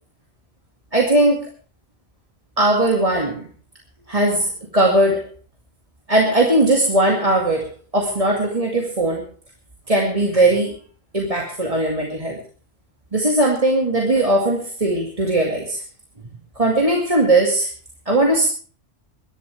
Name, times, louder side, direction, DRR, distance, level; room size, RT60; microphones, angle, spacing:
voice 1, 0.9-1.5 2.6-3.5 4.1-5.3 6.1-9.3 9.9-10.8 11.1-12.4 13.1-15.8 16.6-17.7 18.1-18.5, right 1 dB, 30° right, 0 dB, 2.3 m, -19 dB
22.5 x 12.5 x 3.5 m, 0.40 s
omnidirectional pair, 1.3 m